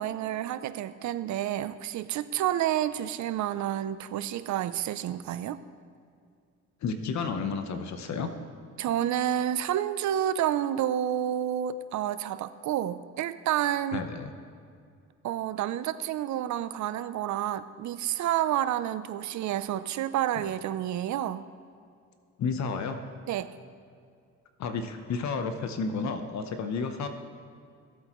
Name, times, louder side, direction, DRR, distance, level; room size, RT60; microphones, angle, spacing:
voice 1, 0.0-5.6 8.8-14.1 15.2-21.4 23.3-23.6, right 11 dB, 70° right, 14 dB, 0.6 m, -29 dB
voice 2, 6.8-8.3 13.9-14.3 22.4-23.0 24.6-27.1, left 5 dB, 65° left, 7 dB, 0.9 m, -31 dB
18.0 x 8.2 x 3.1 m, 2.3 s
cardioid pair, 90°, 30 cm